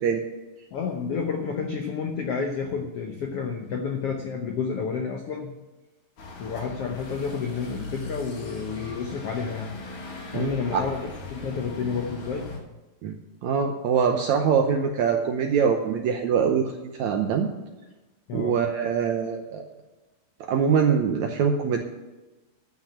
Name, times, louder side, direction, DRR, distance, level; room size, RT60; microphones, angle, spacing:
voice 1, 0.7-5.5 6.4-9.7 10.3-12.5 18.3-18.6, left 5 dB, 80° left, 3 dB, 1.3 m, -30 dB
sound 1, 6.2-12.6, left 2 dB, 55° left, 3.6 m, -39 dB
voice 2, 10.3-10.8 13.0-16.7 17.0-17.5 18.3-19.6 20.5-21.8, right 6 dB, 75° right, 4 dB, 1.7 m, -23 dB
12.0 x 5.9 x 8.7 m, 1.1 s
omnidirectional pair, 4.2 m